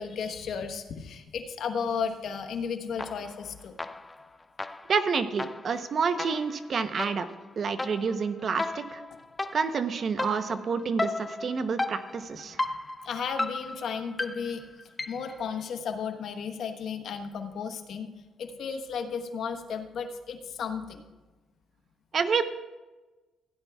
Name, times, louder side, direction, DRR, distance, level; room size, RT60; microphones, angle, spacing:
voice 1, 0.0-3.8 13.0-14.7 15.0-18.1 18.4-21.0, left 6 dB, 65° left, 6 dB, 1.1 m, -34 dB
sound 1, 3.0-3.5 3.8-15.4, left 2 dB, 20° left, 0.4 m, -35 dB
voice 2, 4.9-7.3 7.6-9.0 9.5-12.6 22.1-22.4, right 5 dB, 50° right, 10 dB, 0.8 m, -28 dB
16.5 x 10.5 x 2.3 m, 1.2 s
cardioid pair, 90°, 0 cm